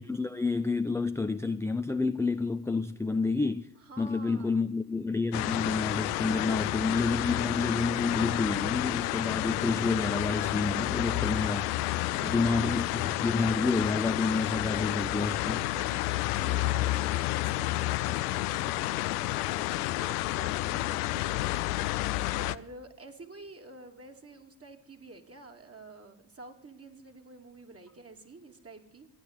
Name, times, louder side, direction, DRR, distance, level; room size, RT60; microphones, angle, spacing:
voice 1, 0.0-3.7 4.0-12.0 12.2-15.7, left 3 dB, 5° left, 0.5 m, -29 dB
voice 2, 3.7-4.6 11.9-12.6 15.6-29.1, right 2 dB, 30° right, 2.8 m, -49 dB
sound 1, 5.3-22.5, left 17 dB, 85° left, 0.6 m, -30 dB
15.0 x 9.8 x 8.1 m
hypercardioid pair, 50°, 45 cm